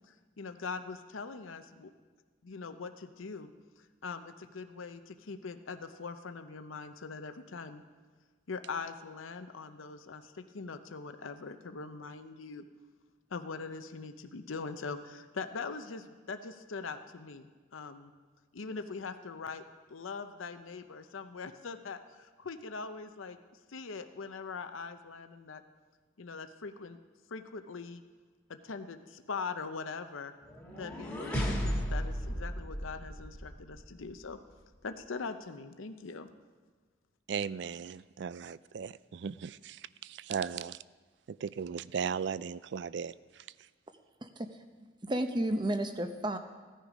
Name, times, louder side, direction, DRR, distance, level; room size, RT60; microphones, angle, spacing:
voice 1, 0.1-1.9 2.4-7.8 8.5-12.7 13.3-18.1 18.5-19.6 19.9-23.4 23.7-25.6 26.2-27.0 27.3-28.0 28.5-30.3 30.8-34.4 34.8-36.3, left 4 dB, 85° left, 8 dB, 0.7 m, -42 dB
sound 1, 30.5-33.6, equal, 5° left, 1.7 m, -34 dB
voice 2, 37.3-40.8 41.3-43.7, right 6 dB, 60° right, 18 dB, 0.3 m, -37 dB
voice 3, 45.0-46.4, right 1 dB, 20° right, 7 dB, 0.7 m, -32 dB
16.0 x 10.0 x 5.1 m, 1.4 s
head